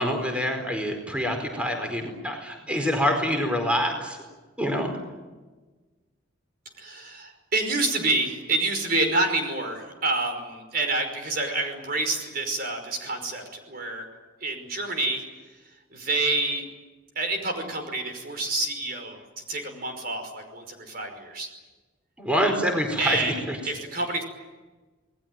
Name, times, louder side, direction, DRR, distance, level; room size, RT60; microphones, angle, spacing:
voice 1, 0.0-4.2 4.6-4.9 22.2-23.6, equal, 5° right, 3 dB, 4.6 m, -26 dB
voice 2, 6.8-14.0 14.4-15.2 15.9-16.6 17.2-19.2 19.5-21.5 23.0-24.2, right 2 dB, 45° right, 5 dB, 5.5 m, -28 dB
28.5 x 20.5 x 9.1 m, 1.2 s
head